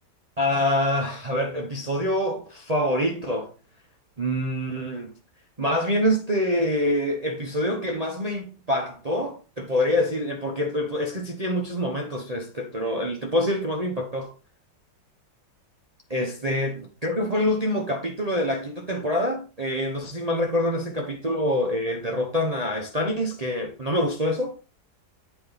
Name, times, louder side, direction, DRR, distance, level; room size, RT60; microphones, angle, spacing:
voice 1, 0.4-3.5 4.2-5.1 5.6-14.3 16.1-24.6, left 1 dB, 30° right, 0.8 m, -26 dB
8.5 x 4.4 x 3.9 m
omnidirectional pair, 1.9 m